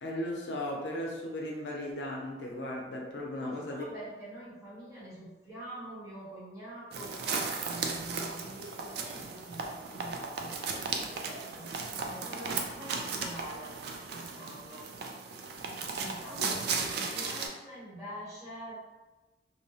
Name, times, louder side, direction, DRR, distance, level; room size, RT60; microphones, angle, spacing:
voice 1, 0.0-3.9 16.4-16.5, left 1 dB, 75° left, -1 dB, 0.5 m, -36 dB
voice 2, 3.3-13.7 14.1-14.9 15.9-18.8, right 1 dB, 20° right, -9 dB, 0.9 m, -45 dB
sound 1, 6.9-17.5, right 4 dB, 65° right, 0.3 m, -36 dB
2.8 x 2.0 x 2.7 m, 1.1 s
head